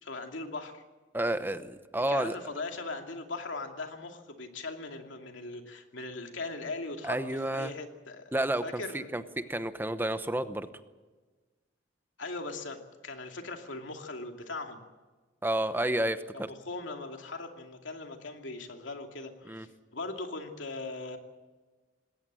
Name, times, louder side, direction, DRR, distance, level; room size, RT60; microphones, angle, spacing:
voice 1, 0.0-0.8 2.1-7.2 7.5-8.3 8.6-9.1 12.2-14.8 16.7-21.2, left 3 dB, 85° left, 4 dB, 2.6 m, -39 dB
voice 2, 1.1-2.4 7.0-7.7 8.3-10.7 15.4-16.5 19.5-19.7, right 1 dB, 10° right, 11 dB, 0.9 m, -31 dB
20.5 x 17.5 x 7.6 m, 1.3 s
head